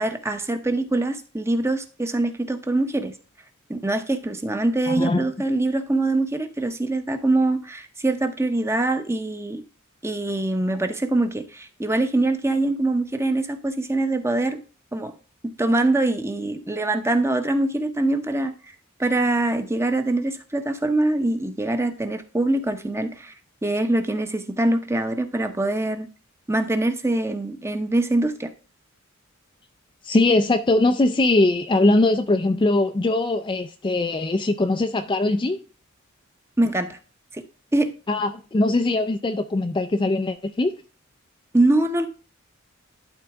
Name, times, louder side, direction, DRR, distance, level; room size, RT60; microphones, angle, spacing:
voice 1, 0.0-3.1 3.7-9.6 10.0-14.6 14.9-15.1 15.6-18.5 19.0-23.3 23.6-26.1 26.5-28.5 36.6-37.0 37.3-37.4 37.7-37.9 41.5-42.1, right 2 dB, 15° right, 0.8 m, -23 dB
voice 2, 4.9-5.3 30.0-35.6 38.1-40.7, left 2 dB, 25° left, 0.4 m, -21 dB
12.0 x 4.0 x 3.4 m
head